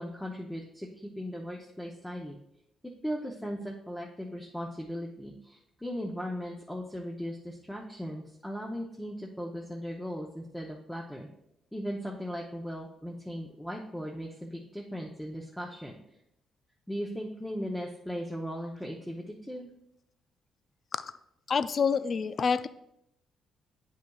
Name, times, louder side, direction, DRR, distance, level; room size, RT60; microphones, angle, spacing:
voice 1, 0.0-2.4 2.8-11.3 11.7-16.0 16.9-19.7, equal, 5° left, -1 dB, 0.7 m, -38 dB
voice 2, 21.5-22.7, left 6 dB, 45° left, 14 dB, 0.3 m, -27 dB
9.1 x 5.6 x 2.3 m, 0.80 s
cardioid pair, 90°, 0 cm